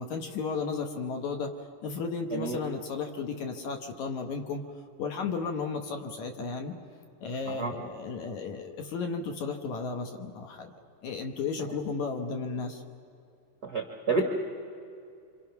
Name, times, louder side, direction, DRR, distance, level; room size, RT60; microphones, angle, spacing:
voice 1, 0.0-1.5 1.8-4.6 5.0-6.7 7.2-10.7 11.0-12.8, left 4 dB, 65° left, 4 dB, 2.2 m, -34 dB
voice 2, 13.6-14.3, right 3 dB, 60° right, 2 dB, 0.9 m, -29 dB
27.0 x 26.5 x 5.9 m, 2.6 s
omnidirectional pair, 4.3 m